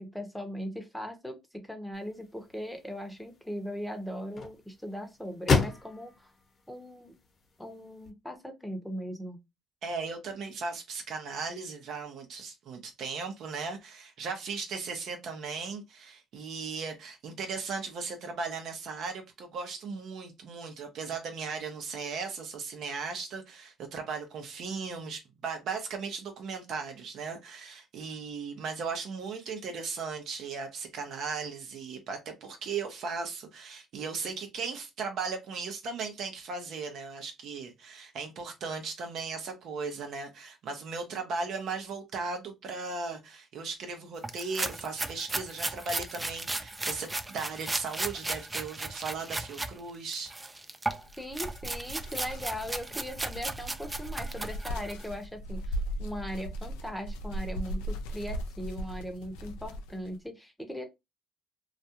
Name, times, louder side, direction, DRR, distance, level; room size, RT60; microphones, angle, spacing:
voice 1, 0.0-6.3 6.7-7.1 7.6-9.4 51.2-60.8, equal, ahead, 0.7 m, -39 dB
sound 1, 1.9-8.1, left 4 dB, 45° left, 0.8 m, -34 dB
voice 2, 9.8-50.3, right 4 dB, 65° right, 0.7 m, -37 dB
sound 2, 44.2-49.7 50.1-55.1, right 2 dB, 15° right, 0.3 m, -35 dB
sound 3, 51.0-60.1, equal, 90° left, 0.4 m, -38 dB
2.4 x 2.2 x 2.8 m
supercardioid pair, 75°, 0 cm